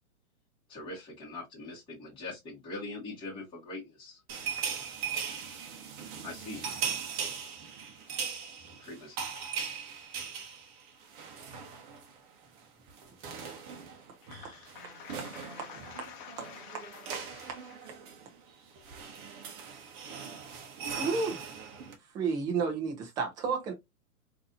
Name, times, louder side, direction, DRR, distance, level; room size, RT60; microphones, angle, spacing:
voice 1, 0.7-4.2 6.2-6.7 8.8-9.2, left 2 dB, 10° left, 1.8 m, -42 dB
sound 1, 4.3-12.2 12.4-12.6 12.9-22.0, right 6 dB, 35° right, 0.9 m, -39 dB
voice 2, 14.2-17.5, left 7 dB, 35° left, 0.9 m, -49 dB
voice 3, 21.0-21.4 22.1-23.7, right 5 dB, 10° right, 0.4 m, -31 dB
3.8 x 2.8 x 2.6 m
hypercardioid pair, 135°, 44 cm